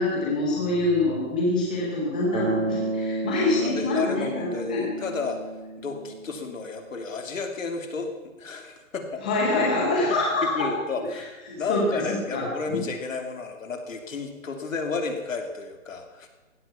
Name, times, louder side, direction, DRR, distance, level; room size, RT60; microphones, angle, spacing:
voice 1, 0.0-4.9 9.2-10.7 11.7-12.0 12.3-12.4, left 2 dB, 5° left, -4 dB, 0.7 m, -25 dB
Bass guitar, 2.3-6.6, right 2 dB, 70° right, 2.9 m, -31 dB
voice 2, 3.2-5.4 5.8-9.2 10.1-16.3, left 4 dB, 70° left, 5 dB, 3.0 m, -32 dB
16.0 x 13.0 x 5.7 m, 1.1 s
hypercardioid pair, 175°, 41 cm